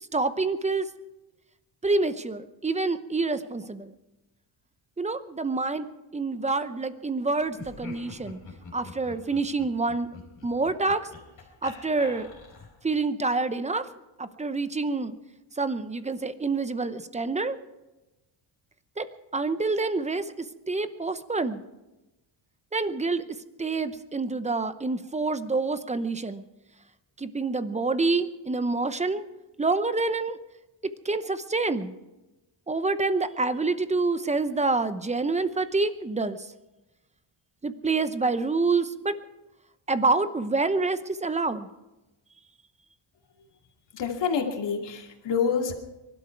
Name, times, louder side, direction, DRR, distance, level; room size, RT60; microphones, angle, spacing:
voice 1, 0.1-0.9 1.8-3.9 5.0-5.9 6.1-8.4 8.7-10.1 10.4-11.0 11.6-12.3 12.8-13.8 14.2-15.1 15.6-17.6 19.0-19.1 19.3-20.2 20.7-21.6 22.7-23.2 23.6-26.4 27.2-29.2 29.6-30.4 31.0-31.9 32.7-36.4 37.6-39.2 39.9-41.7, right 3 dB, 15° right, 12 dB, 0.8 m, -27 dB
Laughter, 7.4-12.9, left 3 dB, 40° left, 4.4 m, -45 dB
voice 2, 43.9-45.7, left 6 dB, 60° left, 1 dB, 2.6 m, -27 dB
23.5 x 12.5 x 4.6 m, 1.0 s
cardioid pair, 135°, 48 cm